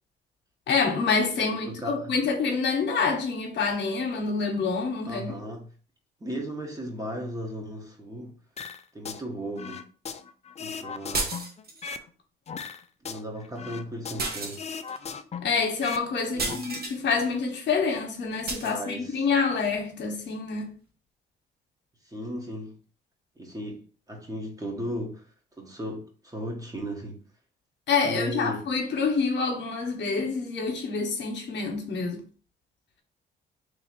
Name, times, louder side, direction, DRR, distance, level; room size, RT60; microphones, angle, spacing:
voice 1, 0.7-5.3 15.4-20.7 27.9-32.2, left 4 dB, 65° left, 1.1 m, -27 dB
voice 2, 1.3-2.1 5.1-5.7 6.2-8.3 8.9-9.8 10.6-11.3 13.0-14.6 16.3-16.7 18.6-19.2 22.1-22.7 23.4-25.2 25.6-27.2 28.0-28.7, equal, 15° right, 1.2 m, -36 dB
sound 1, 8.6-9.2 9.6-12.1 12.5-14.3 14.6-16.1 16.3-16.6, left 6 dB, 35° left, 0.4 m, -38 dB
sound 2, 11.1-11.9 14.2-15.0 16.4-17.0 18.5-18.8, right 3 dB, 50° right, 1.1 m, -32 dB
3.2 x 2.8 x 4.3 m
cardioid pair, 90°, 20 cm